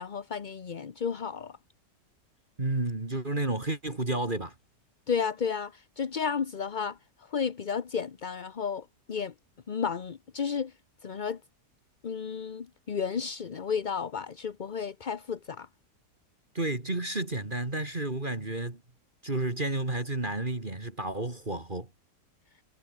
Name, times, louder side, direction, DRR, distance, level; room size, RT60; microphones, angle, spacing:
voice 1, 0.0-1.5 5.1-7.0 7.3-9.3 9.7-10.7 11.0-11.4 12.0-15.7, left 6 dB, 40° left, 0.8 m, -32 dB
voice 2, 2.6-4.5 16.5-18.8 19.2-21.9, right 2 dB, 30° right, 2.9 m, -31 dB
omnidirectional pair, 1.8 m